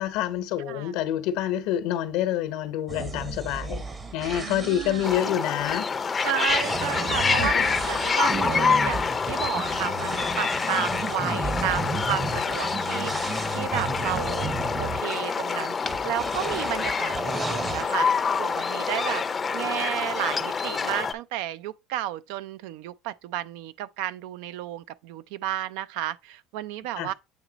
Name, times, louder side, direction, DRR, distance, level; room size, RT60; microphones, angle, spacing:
voice 1, 0.0-3.8 4.1-5.9 7.4-7.7 12.3-12.4 27.0-27.1, left 11 dB, 80° left, 0.9 m, -27 dB
voice 2, 0.6-1.0 4.4-5.2 6.2-19.2 19.5-27.1, right 13 dB, 80° right, 0.4 m, -32 dB
sound 1, 2.9-15.0 15.8-17.9, right 4 dB, 25° right, 0.8 m, -33 dB
sound 2, 5.0-21.1, left 5 dB, 25° left, 0.5 m, -27 dB
8.6 x 3.0 x 4.0 m
supercardioid pair, 105°, 0 cm